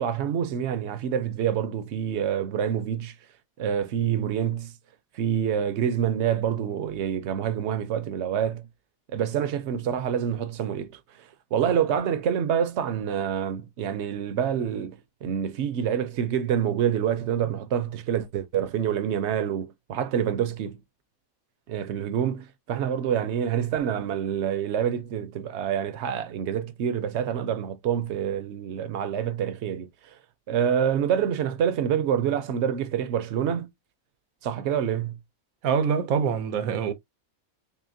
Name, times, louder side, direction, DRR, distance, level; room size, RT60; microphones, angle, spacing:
voice 1, 0.0-3.1 3.6-4.7 5.1-8.7 9.1-20.8 21.7-30.2 30.5-33.7 34.4-35.2, right 9 dB, 60° right, 0.8 m, -27 dB
voice 2, 35.6-36.9, right 7 dB, 90° right, 1.2 m, -24 dB
5.6 x 2.2 x 2.6 m
omnidirectional pair, 1.5 m